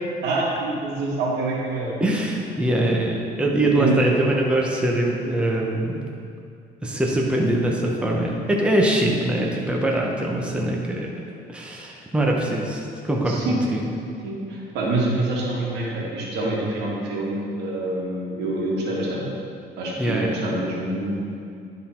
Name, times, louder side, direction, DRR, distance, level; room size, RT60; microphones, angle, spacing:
voice 1, 0.2-1.9 3.7-3.9 13.3-13.6 14.2-19.3 19.8-21.1, right 2 dB, 80° right, -4 dB, 1.9 m, -26 dB
voice 2, 2.0-6.0 6.8-11.1 11.5-13.8 20.0-20.4, right 1 dB, 5° right, -1 dB, 0.9 m, -23 dB
11.0 x 3.9 x 4.4 m, 2.5 s
cardioid pair, 110°, 17 cm